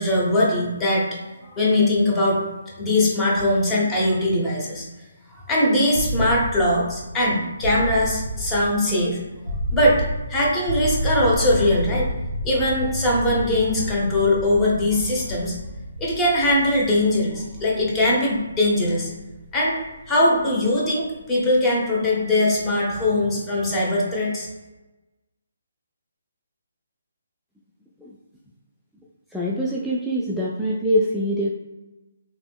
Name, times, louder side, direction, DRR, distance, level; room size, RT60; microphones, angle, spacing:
voice 1, 0.0-2.4 2.8-4.9 5.5-9.2 9.7-12.1 12.4-15.5 16.0-19.1 19.5-19.7 20.1-24.5, left 1 dB, 15° left, -4 dB, 0.9 m, -21 dB
sound 1, 5.9-21.8, equal, 75° left, 1.2 m, -31 dB
voice 2, 29.3-31.5, equal, ahead, -7 dB, 0.3 m, -24 dB
3.4 x 2.9 x 2.2 m, 1.1 s
figure-of-eight pair, 140°, 0 cm